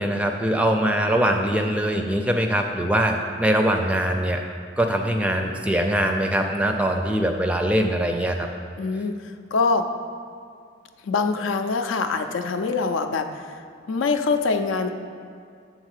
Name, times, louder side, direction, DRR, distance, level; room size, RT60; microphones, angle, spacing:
voice 1, 0.0-4.4 4.8-8.5, right 1 dB, 5° right, 4 dB, 0.4 m, -22 dB
voice 2, 8.8-9.1 9.5-9.9 11.0-13.3 13.9-14.9, left 4 dB, 85° left, 7 dB, 0.5 m, -23 dB
7.1 x 3.8 x 6.5 m, 2.2 s
head